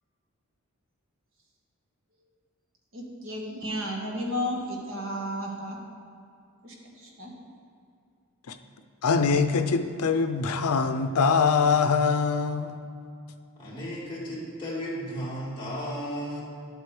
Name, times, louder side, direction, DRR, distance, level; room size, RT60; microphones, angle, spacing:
voice 1, 2.9-5.8 6.6-7.3, equal, 60° right, -1 dB, 1.5 m, -33 dB
voice 2, 9.0-12.8, left 5 dB, 85° left, 9 dB, 0.5 m, -23 dB
voice 3, 13.6-16.4, equal, 20° left, -8 dB, 2.3 m, -34 dB
11.0 x 8.0 x 3.4 m, 2.4 s
head